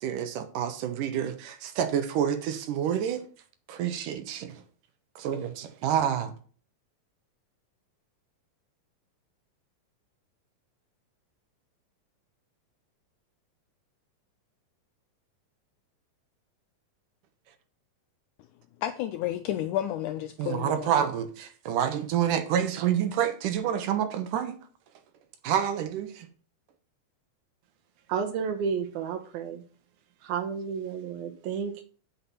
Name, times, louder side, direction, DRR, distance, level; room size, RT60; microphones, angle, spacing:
voice 1, 0.0-3.2 3.7-4.6 5.2-6.3 20.4-24.6 25.4-26.3, right 9 dB, 70° right, 2.4 m, -28 dB
voice 2, 18.8-20.9, left 12 dB, 90° left, 1.8 m, -31 dB
voice 3, 28.1-29.6 30.2-31.8, right 6 dB, 90° right, 3.1 m, -31 dB
8.6 x 5.8 x 5.5 m
omnidirectional pair, 4.1 m